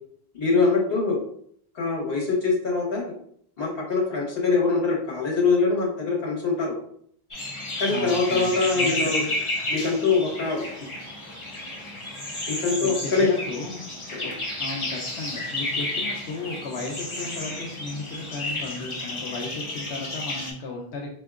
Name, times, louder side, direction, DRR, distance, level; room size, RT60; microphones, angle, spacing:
voice 1, 0.3-1.2 1.7-3.1 3.6-6.7 7.8-9.3 9.7-10.6 12.5-13.3 14.1-14.3, left 4 dB, 65° left, -2 dB, 1.3 m, -23 dB
sound 1, 7.3-20.5, left 1 dB, 30° left, 0.8 m, -32 dB
voice 2, 7.9-9.1 11.0-11.1 12.8-21.1, left 3 dB, 85° left, -1 dB, 0.9 m, -35 dB
4.4 x 2.8 x 2.3 m, 0.64 s
omnidirectional pair, 1.1 m